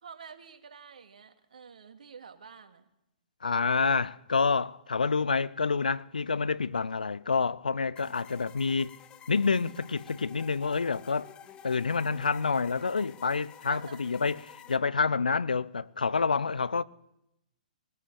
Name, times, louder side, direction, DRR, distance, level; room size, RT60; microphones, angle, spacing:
voice 1, 0.0-2.9 13.6-14.0, right 6 dB, 65° right, 2.3 m, -49 dB
voice 2, 3.4-8.9 9.3-11.3 11.6-16.8, left 4 dB, 75° left, 0.6 m, -28 dB
sound 1, 8.0-14.8, left 9 dB, 20° left, 1.3 m, -51 dB
20.0 x 18.5 x 7.0 m
figure-of-eight pair, 120°, 4 cm